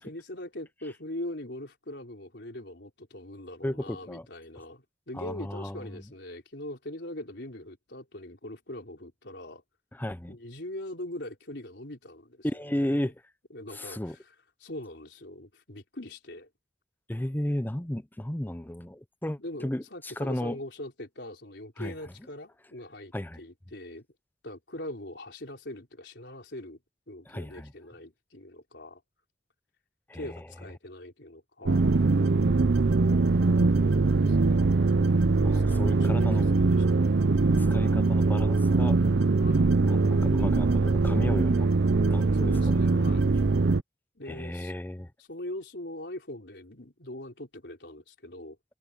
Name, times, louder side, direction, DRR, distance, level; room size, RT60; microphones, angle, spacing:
voice 1, 0.0-9.6 10.3-13.1 13.5-14.3 14.6-16.5 19.4-24.1 24.4-26.8 27.1-29.0 30.1-31.8 33.6-34.8 35.5-36.8 39.4-39.7 42.3-43.3 44.1-44.7 45.2-48.6, left 1 dB, 75° left, 4.3 m, -42 dB
voice 2, 3.6-4.3 5.1-6.0 9.9-10.4 12.4-13.2 13.7-14.2 17.1-20.6 21.8-21.9 23.1-23.4 27.3-27.7 30.1-30.5 35.4-36.5 37.6-39.0 39.8-41.7 42.1-43.0 44.3-45.1, left 1 dB, 10° left, 0.7 m, -34 dB
sound 1, 31.7-43.8, right 3 dB, 80° right, 0.7 m, -22 dB
head